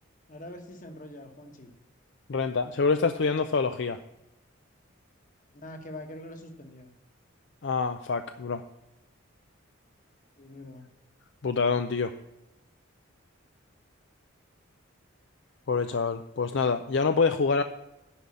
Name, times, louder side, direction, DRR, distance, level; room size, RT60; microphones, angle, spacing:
voice 1, 0.3-1.7 5.5-6.9 10.4-10.9, left 1 dB, 40° left, 6 dB, 1.3 m, -44 dB
voice 2, 2.3-4.0 7.6-8.6 11.4-12.1 15.7-17.6, left 4 dB, 60° left, 9 dB, 0.5 m, -26 dB
10.0 x 5.5 x 8.5 m, 0.93 s
head